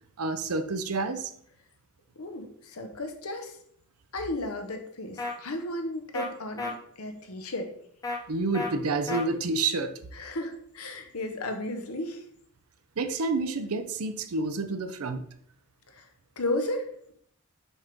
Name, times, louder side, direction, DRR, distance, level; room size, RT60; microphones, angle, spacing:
voice 1, 0.2-1.3 8.3-9.9 13.0-15.2, right 3 dB, 80° right, 9 dB, 0.6 m, -29 dB
voice 2, 2.2-3.6 4.1-7.7 10.1-12.2 15.9-16.1 16.4-17.1, left 1 dB, 75° left, 5 dB, 1.0 m, -34 dB
sound 1, 5.2-5.3 6.1-6.3 6.6-6.7 8.0-8.2 8.5-8.7 9.1-9.2, left 3 dB, 15° left, 0.8 m, -31 dB
6.1 x 3.6 x 5.2 m, 0.66 s
head